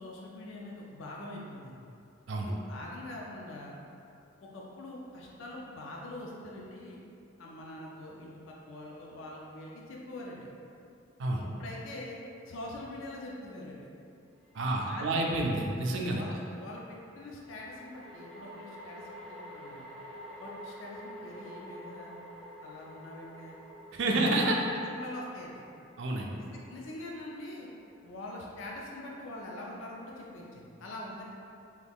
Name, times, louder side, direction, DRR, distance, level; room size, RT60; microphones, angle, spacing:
voice 1, 0.0-1.8 2.5-3.7 4.4-7.0 7.4-10.5 11.4-13.9 14.6-15.2 16.1-19.9 20.4-22.2 22.6-23.6 24.0-25.6 26.4-27.7 28.0-31.2, left 1 dB, 75° left, -3 dB, 0.4 m, -44 dB
sound 1, 14.5-14.6 17.4-28.8, equal, ahead, 0.4 m, -49 dB
voice 2, 14.5-16.2 23.9-24.6 26.0-26.3, right 2 dB, 65° right, 0 dB, 0.4 m, -29 dB
3.1 x 2.3 x 3.5 m, 2.6 s
head